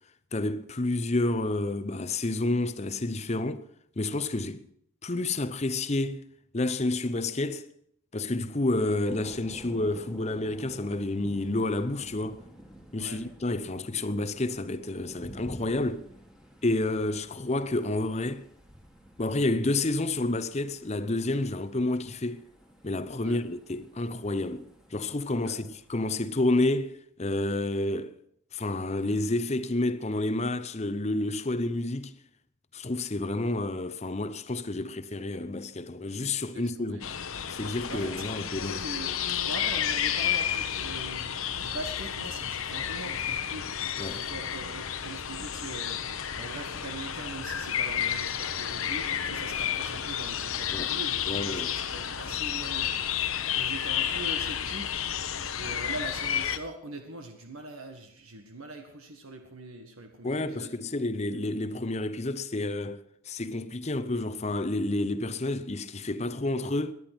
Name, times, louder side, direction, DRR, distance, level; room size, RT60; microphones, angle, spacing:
voice 1, 0.3-3.7 4.0-4.6 5.0-6.2 6.5-7.7 8.1-12.4 12.9-16.1 16.6-18.4 19.2-22.4 22.8-28.2 28.5-32.1 32.7-37.0 37.5-38.8 44.0-44.2 50.7-50.9 51.3-51.7 60.2-66.9, left 2 dB, 30° left, 0.7 m, -29 dB
Thunder, 9.1-26.9, equal, 5° right, 2.0 m, -51 dB
voice 2, 36.5-37.0 37.9-38.3 38.6-43.8 44.1-46.0 46.4-52.9 53.5-54.9 55.6-60.7, right 2 dB, 75° right, 1.7 m, -42 dB
sound 1, 37.0-56.6, left 9 dB, 75° left, 1.0 m, -31 dB
19.0 x 11.0 x 6.1 m
head